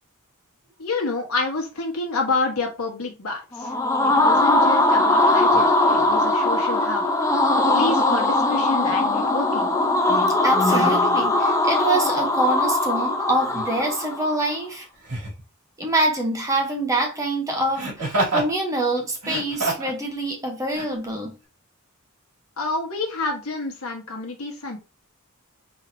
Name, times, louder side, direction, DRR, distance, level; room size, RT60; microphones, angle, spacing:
voice 1, 0.8-3.7 4.1-9.7 22.6-24.8, left 3 dB, 70° left, 1.3 m, -28 dB
sound 1, 3.5-14.4, left 2 dB, 15° left, 0.6 m, -20 dB
voice 2, 10.1-14.9 15.8-21.3, right 1 dB, 15° right, 0.8 m, -25 dB
Laughter, 13.5-13.7 15.0-15.4 17.8-18.5 19.2-20.0 20.7-20.9, right 2 dB, 85° right, 2.2 m, -26 dB
4.1 x 3.1 x 2.6 m
head